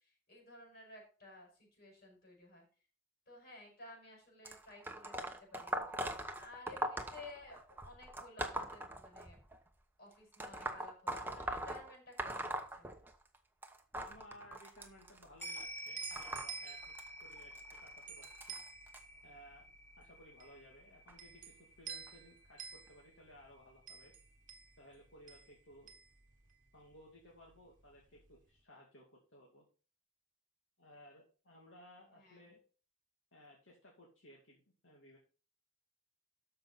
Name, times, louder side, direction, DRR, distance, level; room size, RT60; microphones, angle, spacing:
voice 1, 0.3-2.6 3.3-5.8 6.4-9.4 10.0-12.9 32.2-32.4, left 2 dB, 50° left, 1 dB, 5.4 m, -55 dB
sound 1, 4.4-9.6 10.3-13.4 13.6-19.0 19.8-20.0 21.1-21.2 22.1-22.2 22.9-23.0, right 1 dB, 10° right, 1.0 m, -42 dB
voice 2, 14.0-17.0 17.2-18.6 19.2-19.6 20.0-24.1 24.8-25.9 26.7-29.1 29.3-29.6 30.8-32.6 33.3-35.2, equal, 65° left, -2 dB, 2.5 m, -59 dB
sound 2, 14.8-27.0 27.3-28.4, right 6 dB, 40° right, 1.3 m, -51 dB
sound 3, 15.4-24.0 24.3-24.4, equal, 15° left, 4.2 m, -51 dB
13.0 x 5.7 x 4.1 m, 0.37 s
head